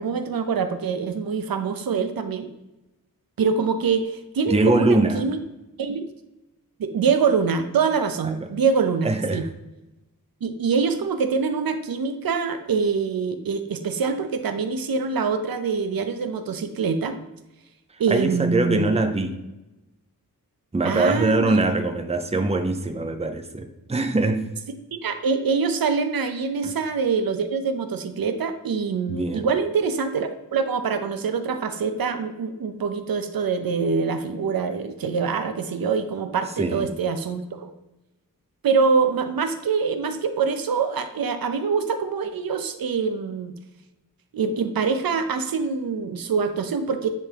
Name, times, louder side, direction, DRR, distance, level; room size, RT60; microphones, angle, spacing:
voice 1, 0.0-2.5 3.4-5.4 5.8-6.0 6.8-9.4 10.4-17.2 18.0-19.0 20.8-21.6 24.9-37.7 38.6-43.5 44.3-47.1, right 5 dB, 85° right, 8 dB, 0.7 m, -24 dB
voice 2, 4.5-5.2 8.2-8.4 9.0-9.5 18.1-19.4 20.7-24.5 26.6-26.7 29.1-29.5 36.6-36.9, right 2 dB, 20° right, 6 dB, 0.6 m, -23 dB
10.0 x 3.5 x 3.4 m, 1.0 s
wide cardioid pair, 115°, 34 cm